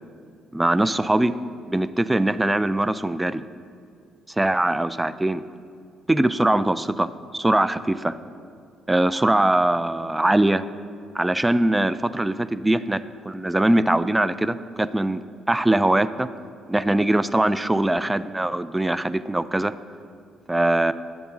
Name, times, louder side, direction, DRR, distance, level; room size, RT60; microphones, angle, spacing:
voice 1, 0.5-1.3 1.7-3.4 4.4-5.5 6.1-8.2 8.9-10.6 11.1-15.2 15.5-16.3 16.7-19.7 20.5-20.9, right 1 dB, 15° right, 14 dB, 0.3 m, -22 dB
10.5 x 3.6 x 6.1 m, 2.3 s
supercardioid pair, 60°, 0 cm